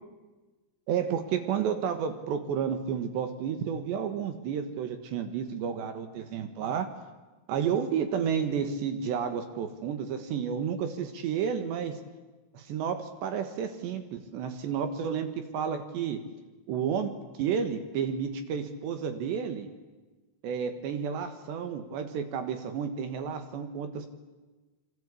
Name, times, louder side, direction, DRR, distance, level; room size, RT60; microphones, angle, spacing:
voice 1, 0.9-6.9 7.5-12.0 12.5-16.2 16.7-17.1 17.4-19.7 20.4-24.1, right 7 dB, 65° right, 8 dB, 3.3 m, -31 dB
27.0 x 24.5 x 8.5 m, 1.2 s
omnidirectional pair, 6.0 m